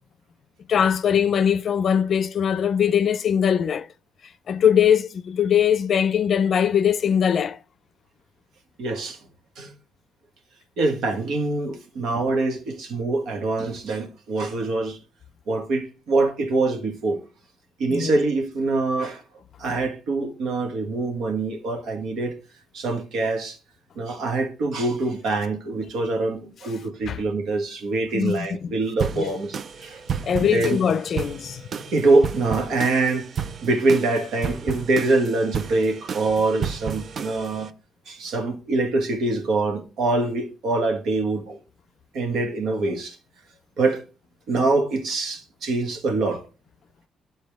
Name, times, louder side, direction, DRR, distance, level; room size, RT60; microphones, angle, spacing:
voice 1, 0.7-3.9 4.5-7.6 17.9-18.1 27.1-27.2 28.1-28.7 29.2-29.3 30.2-31.6, left 8 dB, 60° left, 0.4 m, -21 dB
voice 2, 8.8-9.2 9.6-9.7 10.8-15.0 15.5-17.2 17.8-19.2 19.6-22.4 22.7-23.6 23.9-30.0 30.4-30.8 31.9-33.3 33.6-37.7 38.1-41.6 42.1-43.2 43.8-44.0 44.5-46.4, right 3 dB, 75° right, 1.5 m, -24 dB
sound 1, 29.0-37.7, right 7 dB, 55° right, 0.5 m, -33 dB
11.5 x 4.2 x 3.5 m
cardioid pair, 90°, 0 cm